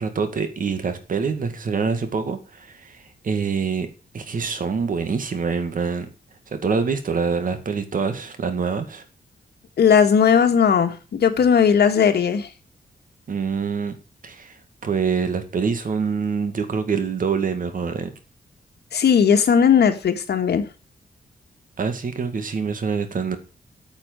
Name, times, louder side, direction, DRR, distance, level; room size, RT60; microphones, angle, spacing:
voice 1, 0.0-3.9 4.1-6.1 6.5-9.0 13.3-13.9 14.2-14.5 14.8-18.1 21.8-23.4, right 5 dB, 55° right, 8 dB, 2.1 m, -25 dB
voice 2, 9.8-12.5 18.9-20.7, left 7 dB, 80° left, 7 dB, 2.0 m, -17 dB
9.1 x 8.0 x 8.0 m, 0.35 s
wide cardioid pair, 140°, 17 cm